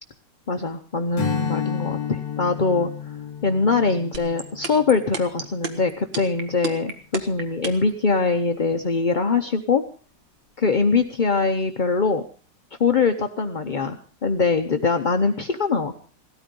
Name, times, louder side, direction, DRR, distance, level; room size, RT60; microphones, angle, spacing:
voice 1, 0.5-2.9 3.4-9.8 10.6-12.2 12.8-16.0, left 4 dB, 50° left, 6 dB, 0.5 m, -22 dB
Strum, 1.2-5.9, left 9 dB, 70° left, 2.9 m, -32 dB
sound 1, 4.1-7.9, right 5 dB, 80° right, 2.3 m, -29 dB
17.5 x 13.5 x 5.2 m, 0.39 s
omnidirectional pair, 2.0 m